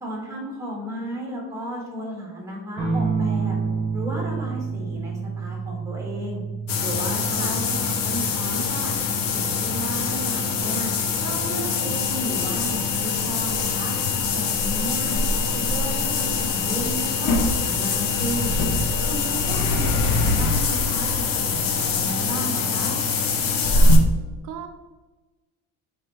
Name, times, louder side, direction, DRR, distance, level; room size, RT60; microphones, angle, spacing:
voice 1, 0.0-3.6 3.9-6.4 6.8-8.9 9.3-10.9 11.2-14.0 14.3-15.2 15.5-18.5 19.1-23.0, right 1 dB, 10° right, -1 dB, 1.7 m, -33 dB
sound 1, 2.8-11.9 13.3-13.9, right 5 dB, 25° right, 1.1 m, -31 dB
sound 2, 6.7-24.0, left 4 dB, 80° left, 1.0 m, -23 dB
voice 2, 7.4-7.6 14.8-15.0 24.4-24.7, right 9 dB, 70° right, 4 dB, 0.7 m, -37 dB
5.5 x 4.9 x 4.3 m, 1.2 s
cardioid pair, 175°, 33 cm